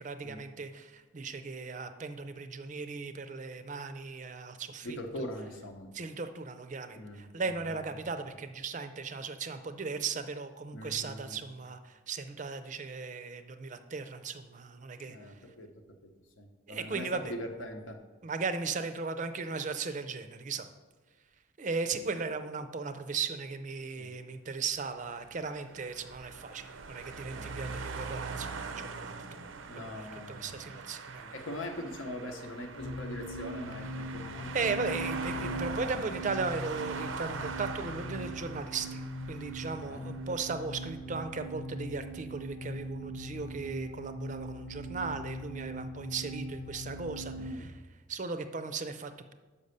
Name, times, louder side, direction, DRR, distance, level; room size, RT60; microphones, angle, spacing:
voice 1, 0.0-5.3 5.9-15.4 16.7-17.3 18.2-20.7 21.6-31.3 34.5-47.8 48.1-49.3, right 4 dB, 40° right, 10 dB, 0.4 m, -37 dB
voice 2, 4.8-5.9 6.9-7.5 10.7-11.4 15.0-15.7 16.0-16.1 16.4-18.0 24.0-24.2 27.3-27.8 29.7-30.8 31.3-34.7 39.9-40.1 47.4-47.7, left 1 dB, 85° left, 4 dB, 0.9 m, -42 dB
sound 1, 24.9-40.3, right 4 dB, 85° right, 0.6 m, -42 dB
sound 2, 32.8-47.5, equal, 55° left, 0.6 m, -40 dB
5.6 x 5.4 x 6.5 m, 1.3 s
head